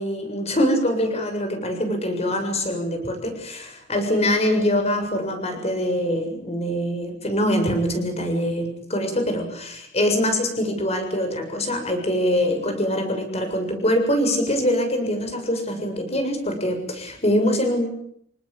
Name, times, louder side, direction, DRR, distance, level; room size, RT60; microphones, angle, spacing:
voice 1, 0.0-17.9, equal, 35° left, 5 dB, 7.3 m, -24 dB
27.5 x 19.5 x 8.9 m, 0.69 s
head